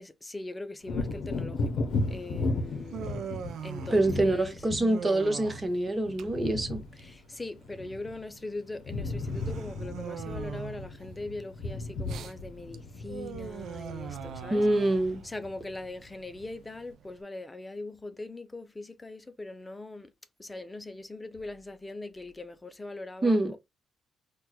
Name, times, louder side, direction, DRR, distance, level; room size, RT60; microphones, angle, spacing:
voice 1, 0.0-3.2 3.6-4.6 7.0-14.6 15.2-20.1 20.4-23.4, left 2 dB, 15° left, 0.5 m, -41 dB
Wind / Thunder, 0.8-8.4 8.7-15.9 16.3-16.5, left 2 dB, 75° left, 0.6 m, -36 dB
Human voice, 2.0-17.2, right 8 dB, 75° right, 0.4 m, -43 dB
voice 2, 3.9-6.8 14.5-15.2 23.2-23.5, right 1 dB, 25° right, 0.9 m, -25 dB
4.4 x 2.2 x 2.2 m
cardioid pair, 90°, 0 cm